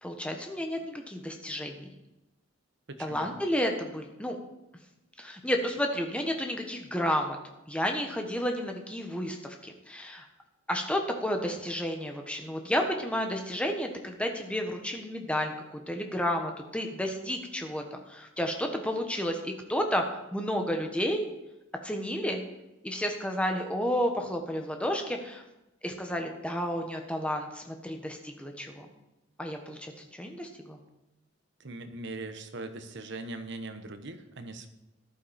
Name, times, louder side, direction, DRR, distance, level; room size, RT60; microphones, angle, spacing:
voice 1, 0.0-1.9 3.0-4.4 5.2-7.4 7.7-10.3 10.7-20.0 20.3-21.3 21.8-22.4 22.8-25.4 25.8-28.9 29.4-30.8, equal, 5° left, 3 dB, 1.3 m, -31 dB
voice 2, 2.9-3.4 31.6-34.7, right 2 dB, 55° right, 8 dB, 1.1 m, -40 dB
13.5 x 11.5 x 4.4 m, 0.96 s
head